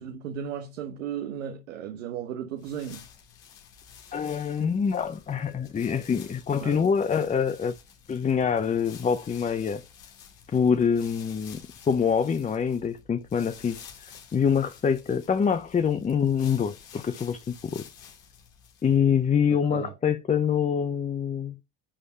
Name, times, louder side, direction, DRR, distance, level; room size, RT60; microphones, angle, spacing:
voice 1, 0.0-3.0 6.6-6.8 19.7-19.9, right 9 dB, 90° right, 1.0 m, -35 dB
sound 1, 2.6-19.1, left 7 dB, 85° left, 2.2 m, -50 dB
voice 2, 4.1-7.8 8.1-9.8 10.5-11.6 11.9-17.8 18.8-21.6, left 7 dB, 20° left, 0.6 m, -25 dB
10.0 x 3.5 x 5.6 m
hypercardioid pair, 75°, 38 cm